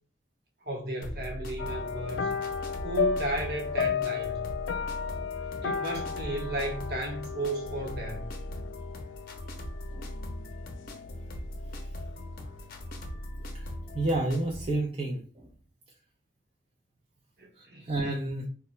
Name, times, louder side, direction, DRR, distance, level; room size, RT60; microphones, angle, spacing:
voice 1, 0.6-2.4 2.8-4.4 5.6-8.3 17.4-17.9, right 1 dB, 55° right, 1.0 m, -34 dB
sound 1, 1.0-14.7, left 1 dB, 50° left, 0.7 m, -40 dB
sound 2, 1.6-11.2 11.4-11.8 12.2-12.3, left 6 dB, 85° left, 0.3 m, -34 dB
voice 2, 13.9-15.5 17.6-18.5, right 2 dB, 30° right, 0.5 m, -30 dB
2.9 x 2.2 x 4.2 m
head